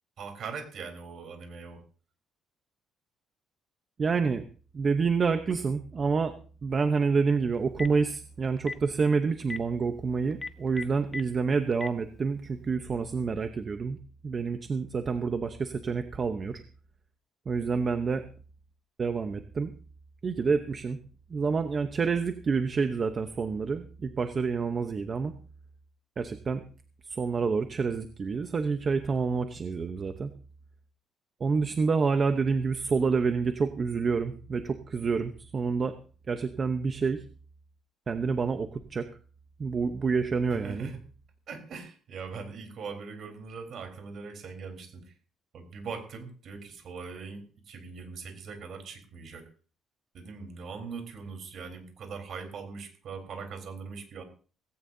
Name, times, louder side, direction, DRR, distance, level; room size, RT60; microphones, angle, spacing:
voice 1, 0.2-1.8 40.5-41.0 41.5-45.1 45.5-49.5 50.1-54.2, right 5 dB, 50° right, 6 dB, 4.0 m, -41 dB
voice 2, 4.0-4.4 4.7-6.4 6.6-14.0 14.2-16.6 17.5-18.2 19.0-19.7 20.2-21.0 21.3-25.3 26.2-26.6 27.1-30.3 31.4-36.0 36.3-37.2 38.1-39.1 39.6-40.9, right 5 dB, 30° right, 8 dB, 0.9 m, -28 dB
Telephone, 7.5-8.0 8.6-8.8 9.4-9.6 10.3-11.2 11.7-11.9, left 3 dB, 20° left, 1.0 m, -35 dB
18.0 x 17.0 x 2.7 m, 0.38 s
cardioid pair, 145°, 0 cm